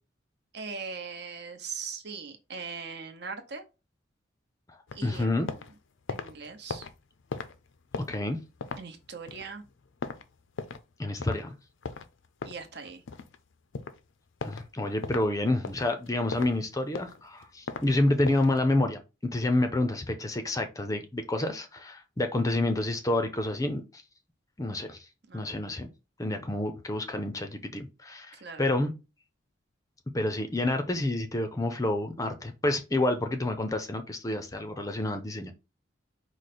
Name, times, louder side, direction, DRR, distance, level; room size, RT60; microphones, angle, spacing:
voice 1, 0.5-3.6 4.9-5.6 6.1-6.9 8.7-9.6 12.4-13.0 25.3-25.5 28.3-28.7, right 5 dB, 55° right, 0.8 m, -40 dB
sound 1, 4.9-5.7 6.0-10.9 11.2-11.4 11.8-13.4 13.7-14.0 14.4-14.7 15.0-15.3 15.6-16.6 16.9-17.9 18.2-18.6, left 4 dB, 70° left, 0.5 m, -38 dB
voice 2, 5.0-5.5 8.1-8.4 11.0-11.6 14.4-24.0 24.6-25.0 25.3-25.9 26.2-28.9 30.1-35.5, left 2 dB, 15° left, 0.5 m, -28 dB
4.8 x 2.1 x 4.2 m
head